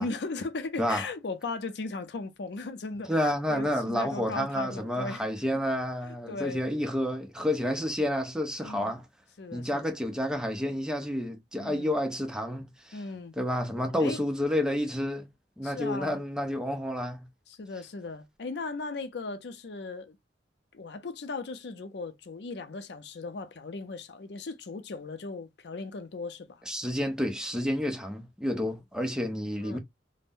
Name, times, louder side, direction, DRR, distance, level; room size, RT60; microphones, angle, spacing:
voice 1, 0.0-5.3 6.0-6.6 8.6-9.0 9.4-9.9 11.6-12.0 12.9-13.4 14.0-14.2 15.6-16.2 17.5-20.2 20.7-26.6 29.6-29.8, left 3 dB, 65° left, 0.5 m, -37 dB
voice 2, 3.1-9.0 9.5-13.0 13.4-15.3 15.6-17.3 26.7-29.8, equal, 5° right, 0.5 m, -30 dB
2.5 x 2.0 x 3.5 m
head